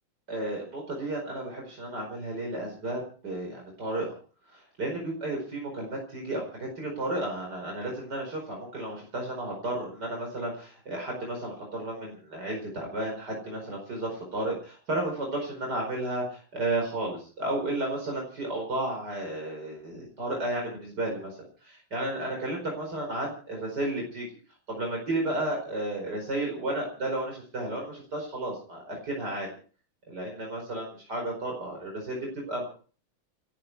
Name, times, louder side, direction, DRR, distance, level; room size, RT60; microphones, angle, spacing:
voice 1, 0.3-4.1 4.5-24.3 24.7-29.5 30.1-32.7, right 1 dB, 55° right, 0 dB, 5.4 m, -33 dB
29.0 x 10.5 x 4.7 m, 0.42 s
omnidirectional pair, 2.2 m